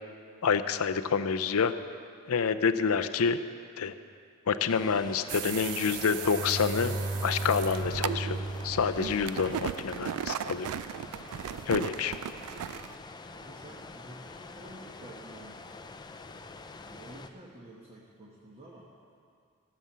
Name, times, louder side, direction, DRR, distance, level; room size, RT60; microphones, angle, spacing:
voice 1, 0.4-1.7 2.3-3.4 3.8-3.9 4.5-6.9 7.2-8.4 8.6-10.7 11.7-12.1, left 6 dB, 70° left, 11 dB, 0.5 m, -27 dB
sound 1, 4.7-17.3, left 3 dB, 20° left, 0.4 m, -46 dB
sound 2, 5.3-13.0, right 10 dB, 80° right, 0.3 m, -37 dB
Bowed string instrument, 6.1-9.9, right 2 dB, 50° right, 0.7 m, -36 dB
voice 2, 13.3-15.6 16.9-18.9, right 1 dB, 30° right, -4 dB, 1.3 m, -50 dB
14.5 x 6.9 x 7.4 m, 2.3 s
head